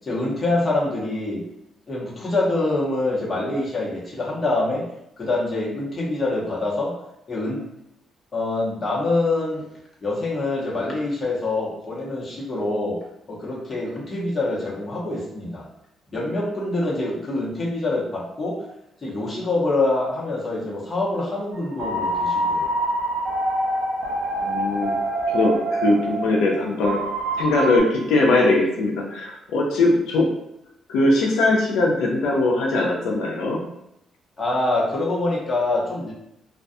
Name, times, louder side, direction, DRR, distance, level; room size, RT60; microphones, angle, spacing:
voice 1, 0.0-1.5 1.9-4.9 5.2-7.0 7.3-7.6 8.3-9.7 10.0-13.0 13.3-15.6 16.1-18.6 19.0-22.7 34.4-36.1, left 2 dB, 30° left, -5 dB, 0.9 m, -25 dB
sound 1, 21.5-27.8, right 1 dB, 70° right, 0.5 m, -25 dB
voice 2, 24.4-24.9 25.3-27.0 27.4-30.3 30.9-33.6, left 2 dB, 90° left, -1 dB, 0.4 m, -20 dB
2.3 x 2.2 x 2.6 m, 0.83 s
cardioid pair, 90°, 0 cm